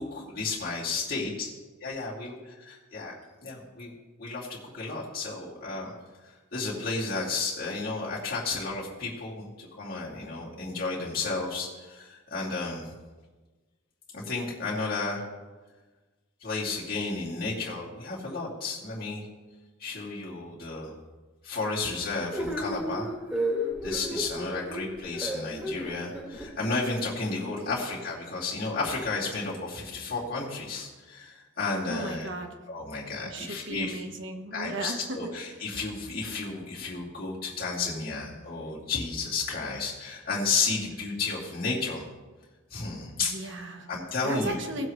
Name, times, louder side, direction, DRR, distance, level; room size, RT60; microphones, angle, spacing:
voice 1, 0.0-1.5 1.8-3.1 3.4-3.9 4.2-5.9 6.2-12.9 14.1-15.2 16.4-19.3 19.8-20.9 21.4-23.1 23.8-32.3 32.7-34.0 34.5-42.0 42.7-43.6 43.9-44.6, left 3 dB, 45° left, -7 dB, 2.6 m, -32 dB
sound 1, 22.3-26.5, equal, 5° right, 3.0 m, -32 dB
voice 2, 27.4-27.8 31.9-32.5 33.2-35.4 43.1-43.9 44.2-44.9, right 2 dB, 65° right, 4 dB, 1.2 m, -36 dB
18.0 x 7.7 x 3.2 m, 1.3 s
head